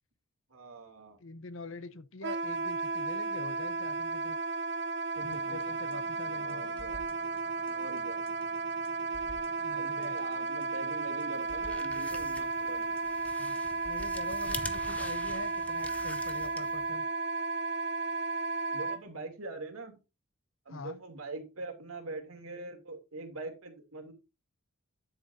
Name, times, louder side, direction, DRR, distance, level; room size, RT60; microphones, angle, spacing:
voice 1, 0.5-1.2 5.1-5.8 6.3-7.0 7.7-8.2 9.7-12.9 18.7-20.0 20.6-24.1, right 2 dB, 85° right, 2.8 m, -43 dB
voice 2, 1.2-4.4 5.2-6.6 9.6-10.2 13.3-13.6 13.8-17.1 20.7-21.0, left 3 dB, 65° left, 0.8 m, -44 dB
Wind instrument woodwind instrument, 2.2-19.0, right 3 dB, 50° right, 0.6 m, -34 dB
sound 1, 5.3-14.7, left 1 dB, 25° left, 1.3 m, -54 dB
sound 2, 11.4-17.0, left 2 dB, 5° left, 0.6 m, -45 dB
10.0 x 8.6 x 2.6 m
head